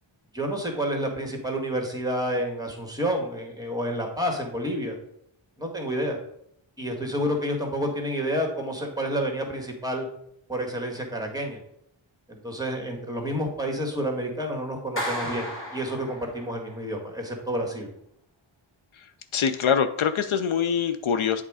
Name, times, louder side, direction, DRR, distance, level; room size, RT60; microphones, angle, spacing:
voice 1, 0.3-5.0 5.6-6.2 6.8-10.1 10.5-11.6 12.3-17.9, equal, 10° right, 1 dB, 1.7 m, -29 dB
Clapping, 15.0-16.6, equal, 25° left, 2.3 m, -33 dB
voice 2, 19.3-21.4, left 7 dB, 75° left, 11 dB, 0.6 m, -24 dB
8.1 x 3.7 x 4.8 m, 0.73 s
wide cardioid pair, 55°, 49 cm